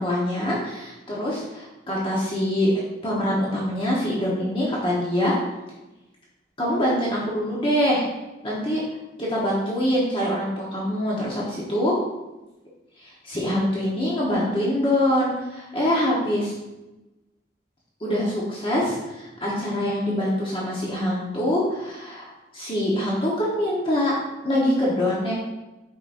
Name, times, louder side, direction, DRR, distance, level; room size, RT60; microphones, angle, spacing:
voice 1, 0.0-2.7 3.0-5.4 6.6-8.1 8.4-8.8 9.2-11.9 13.0-16.4 18.0-24.1 24.4-25.3, left 1 dB, 30° left, -6 dB, 1.3 m, -24 dB
8.3 x 6.0 x 2.7 m, 1.0 s
head